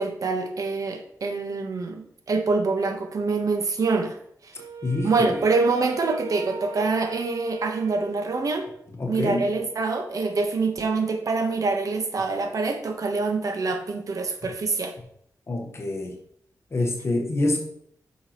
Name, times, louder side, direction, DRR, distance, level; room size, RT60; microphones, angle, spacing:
voice 1, 0.0-4.2 4.4-4.5 5.0-8.7 9.0-14.9, right 3 dB, 65° right, 5 dB, 1.2 m, -25 dB
Wind instrument woodwind instrument, 4.6-9.0, right 6 dB, 85° right, 1.0 m, -40 dB
voice 2, 4.8-5.4 9.0-9.5 15.5-16.2 16.7-17.6, left 2 dB, 45° left, 2 dB, 1.4 m, -26 dB
9.5 x 6.4 x 3.1 m, 0.68 s
wide cardioid pair, 110°, 6 cm